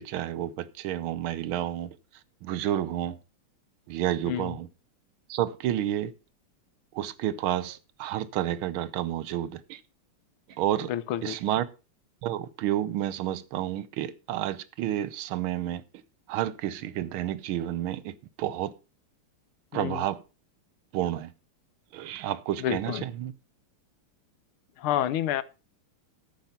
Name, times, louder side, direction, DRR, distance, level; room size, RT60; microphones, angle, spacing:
voice 1, 0.0-1.9 2.4-3.2 3.9-4.7 5.3-6.1 6.9-9.8 10.6-10.9 11.2-11.7 12.2-15.8 16.3-18.7 19.7-20.2 20.9-21.3 21.9-23.3, right 12 dB, 80° right, 1.5 m, -30 dB
voice 2, 10.9-11.4 19.7-20.1 22.6-23.0 24.8-25.4, left 11 dB, 80° left, 1.6 m, -29 dB
13.5 x 5.5 x 5.7 m
omnidirectional pair, 2.4 m